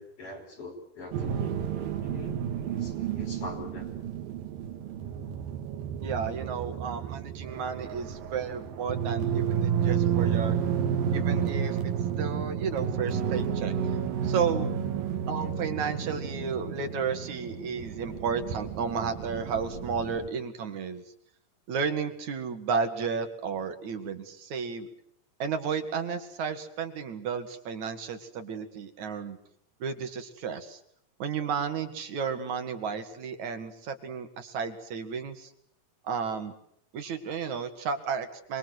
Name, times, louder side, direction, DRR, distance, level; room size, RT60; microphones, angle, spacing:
voice 1, 0.0-1.5 2.0-3.9 5.0-5.1 6.6-6.8, left 2 dB, 35° left, 4 dB, 6.1 m, -43 dB
sound 1, 1.1-20.3, right 8 dB, 70° right, 3.4 m, -31 dB
voice 2, 6.0-10.6 11.1-11.9 12.2-13.7 14.2-14.7 15.3-21.0 21.7-24.9 25.4-29.4 29.8-30.8 31.2-35.5 36.0-36.5 36.9-38.6, right 6 dB, 50° right, 7 dB, 3.4 m, -33 dB
26.5 x 22.5 x 8.1 m, 0.69 s
omnidirectional pair, 4.5 m